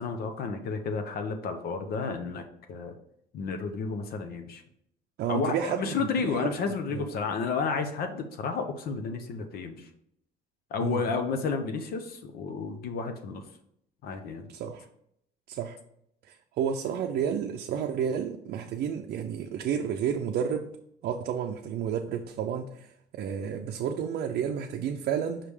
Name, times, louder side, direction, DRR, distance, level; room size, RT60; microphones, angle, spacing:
voice 1, 0.0-2.4 2.7-2.9 3.3-4.6 5.3-9.9 10.7-13.4 14.0-14.5, left 5 dB, 65° left, 0.8 m, -31 dB
voice 2, 5.2-5.9 6.2-6.5 6.9-7.1 10.8-11.0 14.5-14.8 15.5-15.8 16.2-20.7 21.0-25.4, right 8 dB, 70° right, 0.5 m, -31 dB
5.8 x 3.4 x 4.9 m
cardioid pair, 110°, 17 cm